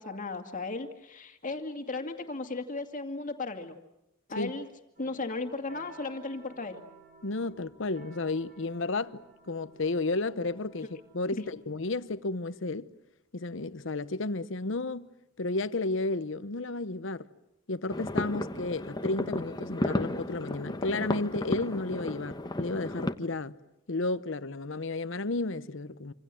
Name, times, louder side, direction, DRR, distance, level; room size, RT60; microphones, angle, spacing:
voice 1, 0.0-3.8 4.3-4.7 5.0-6.8, left 3 dB, 40° left, 2.3 m, -36 dB
sound 1, 5.0-12.4, right 3 dB, 40° right, 8.0 m, -56 dB
voice 2, 7.2-12.9 13.3-15.1 15.4-17.3 17.7-23.5 23.9-26.1, left 2 dB, 65° left, 0.9 m, -32 dB
sound 2, 17.9-23.1, left 1 dB, 20° left, 1.2 m, -33 dB
27.0 x 26.0 x 7.7 m
head